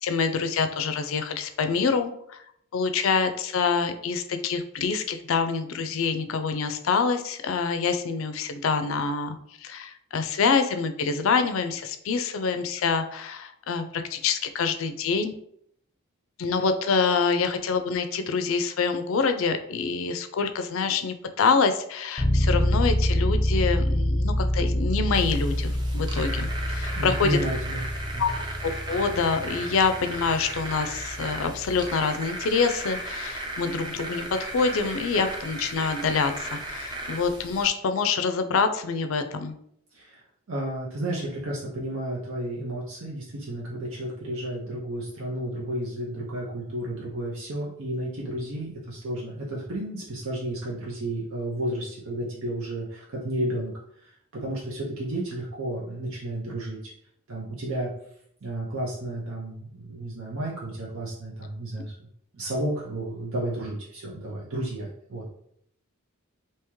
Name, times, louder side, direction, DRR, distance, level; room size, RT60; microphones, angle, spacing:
voice 1, 0.0-2.4 2.7-15.3 16.4-27.4 28.2-28.3 28.6-39.5, left 5 dB, 70° left, 8 dB, 0.4 m, -26 dB
sound 1, 22.2-31.9, equal, 5° left, 0.9 m, -27 dB
sound 2, 25.1-37.7, right 2 dB, 20° right, 0.5 m, -36 dB
voice 2, 26.9-27.8 28.1-28.3 39.9-40.2 40.5-53.7 54.0-56.8 57.3-57.9 58.4-61.9 62.3-65.3, right 1 dB, 75° right, -4 dB, 0.7 m, -32 dB
3.5 x 2.8 x 3.0 m, 0.69 s
head